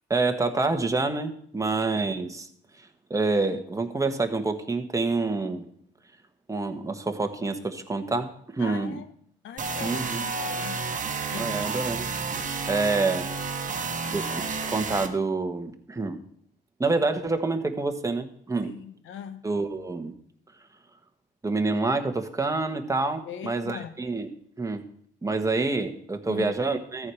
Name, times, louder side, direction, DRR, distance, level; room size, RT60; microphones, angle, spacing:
voice 1, 0.1-2.5 2.7-5.6 6.5-9.0 9.8-10.2 11.4-12.1 12.7-13.6 14.1-16.2 16.8-18.7 19.4-20.1 21.4-24.3 24.6-24.9 25.2-27.1, right 3 dB, 15° right, 1.5 m, -27 dB
voice 2, 8.6-9.1 9.4-10.8 11.3-11.7 18.6-19.4 23.2-23.9 26.3-26.5, left 8 dB, 80° left, 1.1 m, -40 dB
sound 1, 9.6-15.1, right 4 dB, 40° right, 1.4 m, -31 dB
13.5 x 4.9 x 7.8 m
cardioid pair, 90°, 20 cm